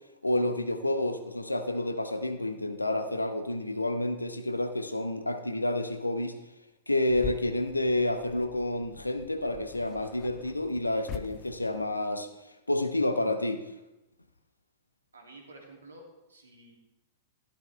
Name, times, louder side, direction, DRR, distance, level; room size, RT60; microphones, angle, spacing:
voice 1, 0.2-6.4 6.9-12.3 12.7-13.6, left 1 dB, 85° left, 8 dB, 0.9 m, -29 dB
sound 1, 7.1-12.0, left 10 dB, 35° left, 0.4 m, -44 dB
voice 2, 15.1-16.8, right 2 dB, 70° right, 1 dB, 2.4 m, -51 dB
12.5 x 11.5 x 3.3 m, 0.97 s
figure-of-eight pair, 100°, 0 cm